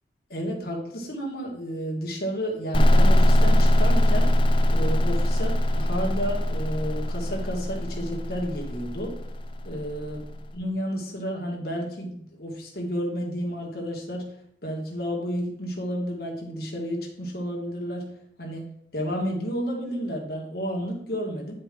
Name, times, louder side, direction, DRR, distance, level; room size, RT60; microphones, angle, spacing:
voice 1, 0.3-4.3 4.7-9.2 9.7-10.2 10.5-14.3 14.6-18.1 18.4-18.7 18.9-21.5, equal, 55° left, 0 dB, 1.7 m, -31 dB
sound 1, 2.7-10.3, left 1 dB, 25° left, 0.5 m, -21 dB
9.2 x 4.9 x 3.7 m, 0.70 s
head